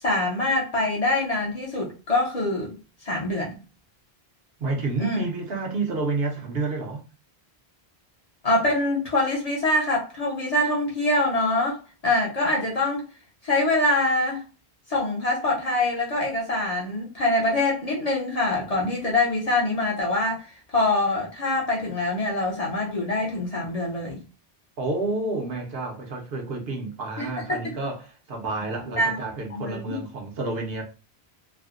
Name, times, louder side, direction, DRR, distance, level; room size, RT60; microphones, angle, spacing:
voice 1, 0.0-2.8 3.0-3.6 5.0-5.3 8.4-13.1 13.4-14.4 14.9-20.4 20.7-24.2 27.2-27.6 29.0-29.2 29.5-30.0, left 2 dB, 40° left, 0.8 m, -24 dB
voice 2, 4.6-7.0 24.8-30.8, right 3 dB, 75° right, 1.0 m, -29 dB
3.3 x 2.1 x 2.4 m
omnidirectional pair, 1.0 m